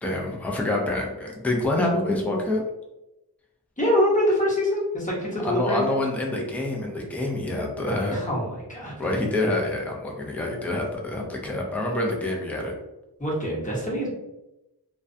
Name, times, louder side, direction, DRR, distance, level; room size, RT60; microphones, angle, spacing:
voice 1, 0.0-2.6 5.4-8.2 9.0-12.7, left 1 dB, 5° left, -1 dB, 0.4 m, -26 dB
voice 2, 3.8-6.0 8.1-9.1 13.2-14.1, left 1 dB, 20° left, -6 dB, 0.9 m, -25 dB
2.3 x 2.2 x 2.6 m, 0.96 s
wide cardioid pair, 45°, 39 cm